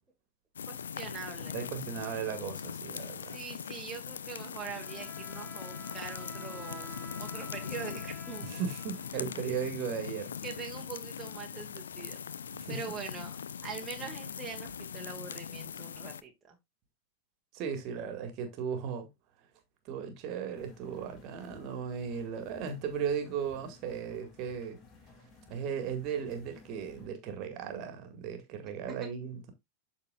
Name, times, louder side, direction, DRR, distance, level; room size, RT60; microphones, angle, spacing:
sound 1, 0.6-16.2, left 7 dB, 70° left, 0.5 m, -41 dB
voice 1, 0.7-1.5 3.3-6.9 7.2-8.4 10.4-12.2 12.7-13.4 13.6-16.6 28.9-29.1, right 6 dB, 15° right, 1.6 m, -43 dB
voice 2, 1.5-3.4 8.4-10.4 12.5-13.0 17.5-19.1 19.9-24.8 25.5-29.5, right 7 dB, 40° right, 1.9 m, -36 dB
Bowed string instrument, 4.6-9.7, right 1 dB, 5° left, 1.9 m, -50 dB
sound 2, 20.5-27.1, left 4 dB, 30° left, 2.2 m, -57 dB
12.5 x 4.2 x 2.4 m
figure-of-eight pair, 90°, 0 cm